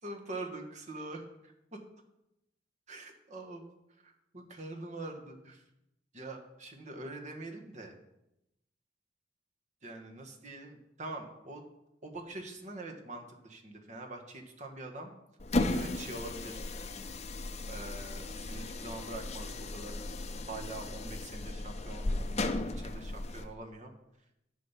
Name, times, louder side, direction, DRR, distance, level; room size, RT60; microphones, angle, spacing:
voice 1, 0.0-1.8 2.9-3.6 4.0-5.6 6.1-8.0 9.8-11.6 12.0-15.1 15.7-16.6 17.7-20.0 20.4-23.9, right 2 dB, 40° right, 3 dB, 1.6 m, -44 dB
sound 1, 15.4-23.5, left 2 dB, 40° left, 0.7 m, -36 dB
10.5 x 5.8 x 7.4 m, 0.87 s
head